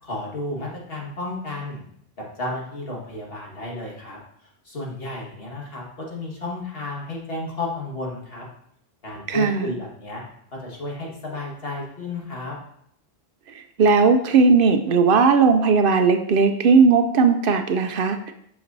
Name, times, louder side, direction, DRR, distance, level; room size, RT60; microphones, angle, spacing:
voice 1, 0.0-1.9 2.2-4.2 4.6-8.4 9.0-10.2 10.6-12.6, left 2 dB, 65° left, -3 dB, 1.9 m, -32 dB
voice 2, 9.3-9.7 13.5-18.3, right 4 dB, 65° right, 7 dB, 0.7 m, -17 dB
8.2 x 5.9 x 2.7 m, 0.70 s
omnidirectional pair, 1.1 m